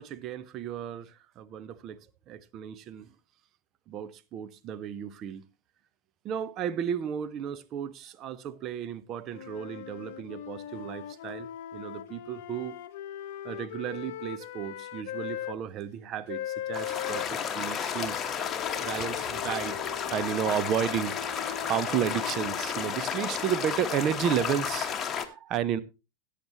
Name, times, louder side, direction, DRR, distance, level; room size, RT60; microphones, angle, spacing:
voice 1, 0.0-2.0 2.3-3.1 3.9-5.4 6.2-12.8 13.4-18.2 18.8-25.8, right 9 dB, 35° right, 0.8 m, -33 dB
sound 1, 9.3-15.6 16.3-23.4, left 11 dB, 50° left, 0.9 m, -40 dB
sound 2, 16.7-25.2, left 7 dB, 20° left, 1.2 m, -32 dB
17.0 x 8.4 x 3.0 m
figure-of-eight pair, 90°, 0 cm